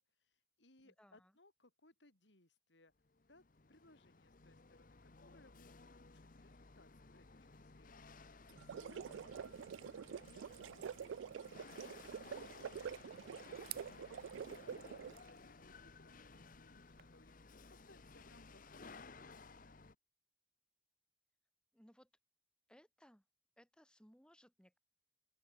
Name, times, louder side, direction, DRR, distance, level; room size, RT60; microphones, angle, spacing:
voice 1, 0.0-2.9 3.2-19.7, left 2 dB, 70° left, 4.6 m, -68 dB
voice 2, 0.8-1.3 21.7-22.1 22.7-23.2 23.6-24.8, equal, 5° left, 3.0 m, -65 dB
Chatter / Hiss / Rattle, 3.0-19.9, left 3 dB, 45° left, 1.0 m, -58 dB
sound 1, 8.5-15.3, right 7 dB, 85° right, 0.3 m, -47 dB
sound 2, 12.0-17.0, right 16 dB, 55° right, 0.8 m, -57 dB
open air
head